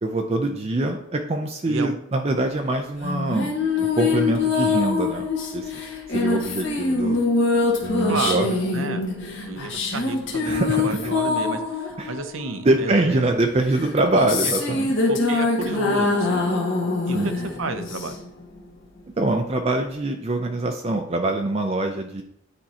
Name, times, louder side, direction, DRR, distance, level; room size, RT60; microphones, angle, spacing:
voice 1, 0.0-3.5 4.0-5.3 5.5-5.8 6.1-7.2 7.8-8.6 10.4-11.1 12.0-12.1 12.6-14.9 17.1-17.3 19.2-22.2, right 2 dB, 30° right, 4 dB, 0.5 m, -24 dB
sound 1, 3.0-12.9 13.7-18.4, left 3 dB, 60° left, 1.4 m, -24 dB
voice 2, 8.0-8.4 8.7-9.1 9.4-13.4 15.1-16.4 17.1-17.2 17.6-18.2, right 3 dB, 70° right, 9 dB, 0.7 m, -31 dB
9.6 x 4.4 x 2.9 m, 0.69 s
head